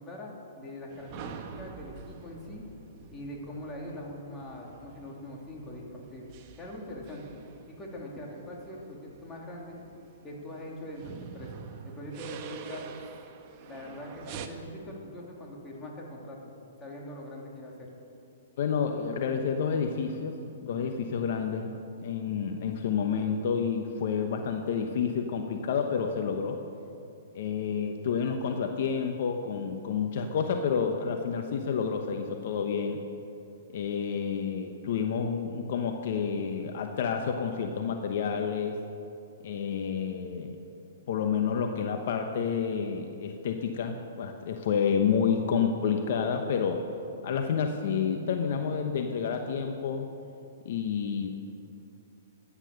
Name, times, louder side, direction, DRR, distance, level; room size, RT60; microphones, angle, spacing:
voice 1, 0.0-2.6 3.1-6.3 6.6-7.4 7.7-9.8 10.2-11.5 11.8-12.8 13.6-16.5 16.8-17.9, left 1 dB, 15° left, -2 dB, 3.0 m, -42 dB
sound 1, 0.9-14.5, right 6 dB, 40° right, 1.2 m, -47 dB
voice 2, 18.6-21.7 22.0-26.6 27.3-33.0 33.7-38.8 39.4-40.6 41.1-46.8 47.2-50.1 50.6-51.3, left 6 dB, 60° left, 5 dB, 1.1 m, -29 dB
15.0 x 9.9 x 6.6 m, 2.7 s
hypercardioid pair, 135°, 0 cm